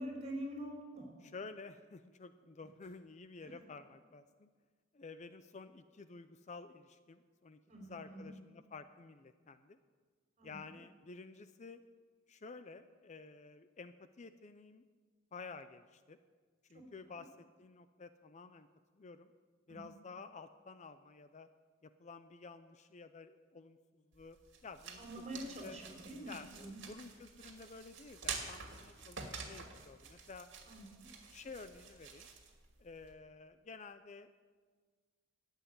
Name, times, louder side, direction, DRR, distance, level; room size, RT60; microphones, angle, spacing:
voice 1, 0.0-1.1 3.4-3.5 7.7-8.3 10.4-10.6 16.7-17.2 19.7-19.9 25.0-26.8 30.6-31.0, right 1 dB, 35° right, 0 dB, 4.5 m, -46 dB
voice 2, 1.2-4.5 4.9-9.8 10.4-11.8 12.3-14.8 15.3-16.2 16.7-18.7 18.9-19.3 19.7-21.5 21.8-24.4 24.6-25.8 26.2-30.5 31.3-32.3 32.8-34.3, left 4 dB, 35° left, 11 dB, 0.5 m, -52 dB
sound 1, 24.1-33.1, right 5 dB, 60° right, 2.4 m, -48 dB
14.0 x 8.2 x 9.5 m, 1.5 s
head